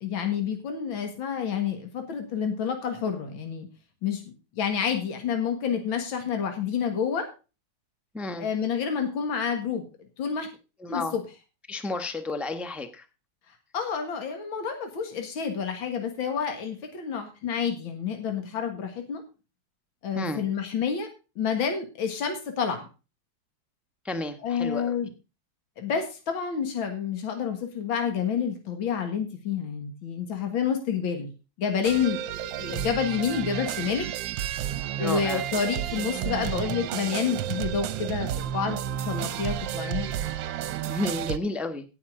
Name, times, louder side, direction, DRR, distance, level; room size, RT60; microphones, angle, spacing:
voice 1, 0.0-3.7 4.0-7.3 8.4-9.8 10.2-10.5 10.9-11.2 13.7-19.2 20.0-21.1 21.4-22.9 24.4-25.1 25.8-31.3 31.6-32.2 32.5-34.1 35.0-38.8 39.1-40.1 40.9-41.0, left 7 dB, 75° left, 5 dB, 2.5 m, -29 dB
voice 2, 8.1-8.5 10.8-11.1 11.7-13.0 20.1-20.4 24.0-24.9 35.0-35.4 40.8-41.8, left 2 dB, ahead, 9 dB, 0.7 m, -31 dB
sound 1, 31.8-41.4, right 10 dB, 75° right, 1.4 m, -31 dB
17.0 x 6.9 x 3.8 m, 0.31 s
omnidirectional pair, 2.2 m